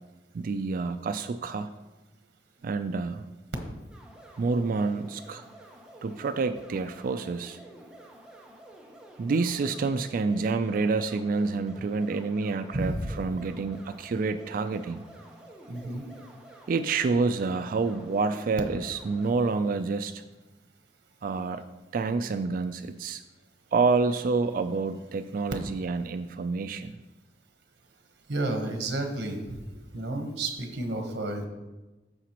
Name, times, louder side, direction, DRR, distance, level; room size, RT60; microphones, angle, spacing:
voice 1, 0.3-1.7 2.6-3.2 4.4-5.4 6.0-7.6 9.2-15.0 16.7-20.2 21.2-21.6 21.9-23.2 23.7-27.0, right 4 dB, 50° right, 10 dB, 0.3 m, -28 dB
sound 1, 3.9-19.3, right 1 dB, 5° right, 1.0 m, -50 dB
voice 2, 12.7-13.1 15.7-16.0 28.3-29.6 29.9-31.5, right 2 dB, 85° right, 4 dB, 1.1 m, -31 dB
14.0 x 4.9 x 2.9 m, 1.1 s
head